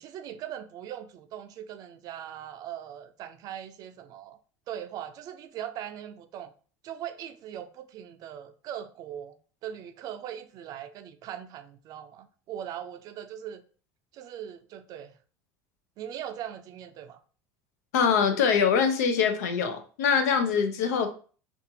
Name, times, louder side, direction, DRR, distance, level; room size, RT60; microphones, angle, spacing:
voice 1, 0.0-4.4 4.7-6.5 6.8-9.3 9.6-13.6 14.1-15.1 16.0-17.2, right 10 dB, 50° right, 0.4 m, -40 dB
voice 2, 17.9-21.1, left 6 dB, 90° left, 0.5 m, -24 dB
2.6 x 2.4 x 2.7 m
supercardioid pair, 110°, 8 cm